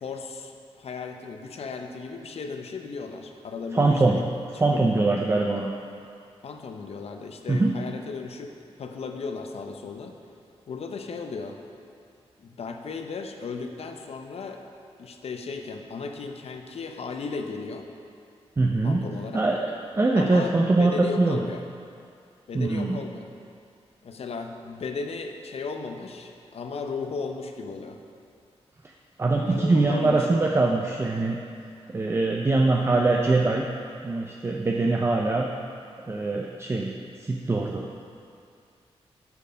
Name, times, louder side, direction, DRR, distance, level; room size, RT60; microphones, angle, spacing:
voice 1, 0.0-4.8 6.4-8.5 8.8-10.2 10.7-11.6 12.4-14.6 15.0-17.9 18.8-19.5 20.1-20.5 20.8-21.6 22.5-23.3 24.0-28.0 29.5-30.5, left 4 dB, 70° left, 4 dB, 0.6 m, -35 dB
voice 2, 3.7-4.3 4.6-5.7 7.5-7.8 18.6-19.0 19.3-21.4 22.5-22.9 29.2-31.4 31.9-33.7 34.0-35.5 36.1-36.9 37.2-37.9, right 2 dB, 25° right, 0 dB, 0.4 m, -23 dB
8.2 x 4.4 x 5.5 m, 2.4 s
wide cardioid pair, 100°, 11 cm